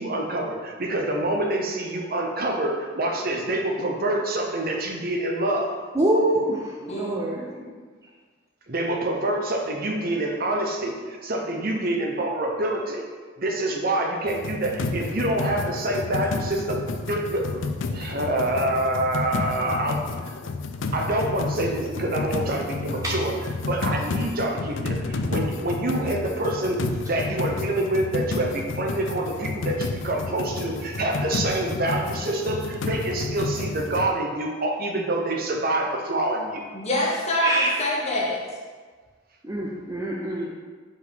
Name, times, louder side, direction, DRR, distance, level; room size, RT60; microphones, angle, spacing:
voice 1, 0.0-5.8 8.7-13.0 13.4-17.6 17.9-20.0 20.9-23.3 23.6-26.8 27.0-36.6, right 1 dB, 50° right, 1 dB, 0.8 m, -26 dB
voice 2, 5.9-7.4 23.0-23.1 37.4-37.8 39.4-40.5, right 1 dB, 15° right, -3 dB, 0.5 m, -25 dB
voice 3, 6.9-7.6 36.7-38.4, equal, 35° left, -3 dB, 1.2 m, -26 dB
sound 1, 14.3-34.1, left 3 dB, 75° left, 0.5 m, -31 dB
4.9 x 4.9 x 5.0 m, 1.5 s
head